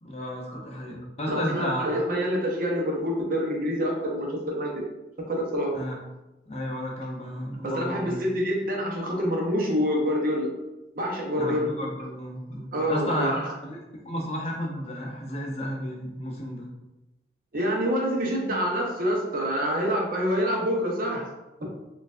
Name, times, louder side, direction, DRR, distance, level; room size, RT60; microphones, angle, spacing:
voice 1, 0.0-1.8 5.7-6.0 6.5-8.2 11.3-13.4 13.6-13.8 14.0-16.7, equal, 35° left, -1 dB, 0.6 m, -32 dB
voice 2, 1.3-4.7 5.3-5.7 7.6-10.5 10.9-11.7 12.7-13.4 17.5-21.2 21.6-21.7, equal, 50° right, -1 dB, 0.7 m, -26 dB
4.3 x 2.5 x 2.4 m, 1.0 s
head